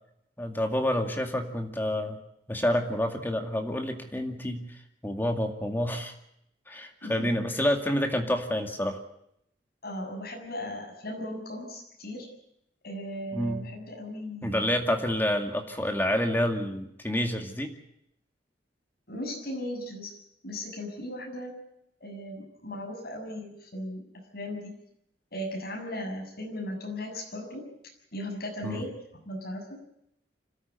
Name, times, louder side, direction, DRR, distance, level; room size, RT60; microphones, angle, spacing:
voice 1, 0.4-2.2 2.5-4.7 5.0-6.1 6.7-9.0 13.3-13.6 14.4-17.7 28.6-28.8, left 1 dB, 10° left, 4 dB, 2.2 m, -28 dB
voice 2, 9.8-12.3 12.8-14.7 19.1-20.1 20.4-21.5 22.0-24.0 24.3-24.7 25.3-27.6 28.1-29.8, left 1 dB, 55° left, 1 dB, 7.1 m, -37 dB
26.0 x 13.5 x 9.6 m, 0.78 s
head